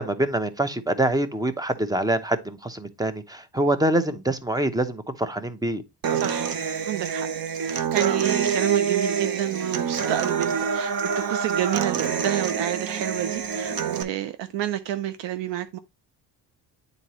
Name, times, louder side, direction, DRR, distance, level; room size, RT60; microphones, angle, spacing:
voice 1, 0.0-5.8, right 1 dB, 10° right, 0.7 m, -25 dB
Human voice / Acoustic guitar, 6.0-14.0, right 7 dB, 55° right, 1.0 m, -26 dB
voice 2, 6.1-6.5 6.8-7.3 7.6-15.8, right 11 dB, 75° right, 0.6 m, -29 dB
9.1 x 4.0 x 2.9 m
cardioid pair, 110°, 43 cm